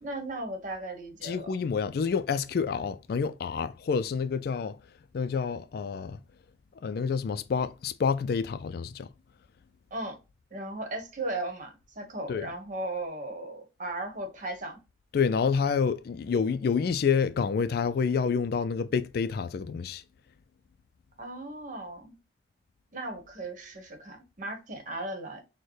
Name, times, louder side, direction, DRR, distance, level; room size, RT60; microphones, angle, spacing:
voice 1, 0.0-1.6 9.9-10.2 10.5-14.8 21.2-22.2 22.9-25.4, right 2 dB, 45° right, 1.1 m, -36 dB
voice 2, 1.2-4.8 5.1-6.2 6.8-9.1 12.3-12.5 15.1-20.0, left 6 dB, 60° left, 0.3 m, -28 dB
6.3 x 2.2 x 3.1 m
head